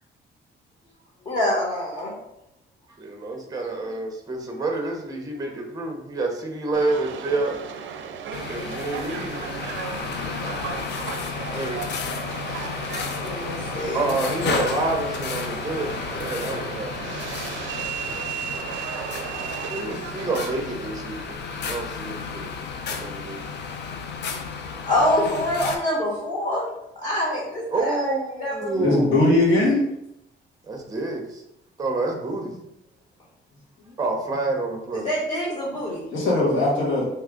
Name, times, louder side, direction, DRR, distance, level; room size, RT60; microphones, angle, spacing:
voice 1, 1.2-2.1 13.2-14.1 24.3-24.4 24.8-26.7 27.0-28.9 35.0-36.0, left 1 dB, 35° left, -5 dB, 1.2 m, -25 dB
voice 2, 3.0-7.7 8.4-9.4 11.5-11.8 13.9-17.1 19.7-22.6 22.9-23.5 26.4-26.5 27.7-29.1 30.6-31.4 31.8-32.5 34.0-35.1, right 2 dB, 20° right, 2 dB, 0.6 m, -28 dB
Subway metro underground, 6.7-21.4, right 7 dB, 75° right, 0.4 m, -35 dB
sound 1, 8.3-25.8, left 5 dB, 60° left, 0.5 m, -32 dB
voice 3, 28.8-29.8 36.1-37.1, left 2 dB, 80° left, -4 dB, 1.3 m, -19 dB
2.8 x 2.3 x 3.6 m, 0.82 s
cardioid pair, 90°, 20 cm